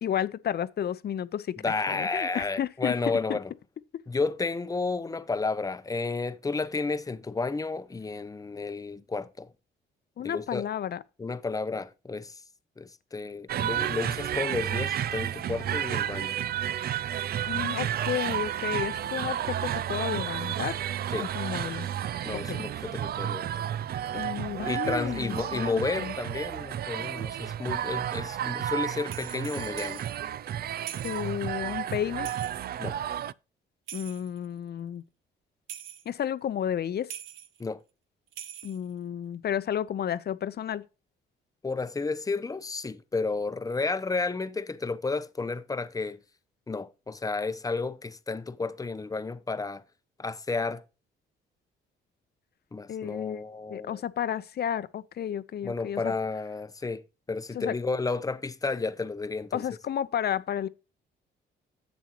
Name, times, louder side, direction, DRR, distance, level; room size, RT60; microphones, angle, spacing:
voice 1, 0.0-1.6 1.9-2.9 3.3-3.4 10.2-11.0 17.5-20.8 21.2-21.9 22.5-22.6 24.1-26.1 31.0-32.3 33.9-35.0 36.1-37.1 38.6-40.8 52.9-53.4 53.7-56.1 57.5-57.7 59.5-60.7, left 9 dB, 55° left, 0.7 m, -32 dB
voice 2, 1.6-3.5 4.1-9.5 10.2-10.6 11.2-12.4 12.8-16.4 21.1-21.3 22.2-23.6 24.7-30.0 32.8-33.0 37.6-37.8 41.6-46.2 46.7-49.8 50.2-50.8 52.7-54.0 55.6-57.0 57.3-59.6, left 3 dB, 15° left, 0.8 m, -32 dB
sound 1, 13.5-33.3, right 10 dB, 50° right, 0.4 m, -32 dB
sound 2, 29.0-30.2 30.8-31.3 32.2-32.8 33.9-34.5 35.7-36.1 37.1-37.6 38.3-38.9, right 10 dB, 85° right, 1.0 m, -43 dB
10.5 x 8.0 x 3.0 m
cardioid pair, 90°, 20 cm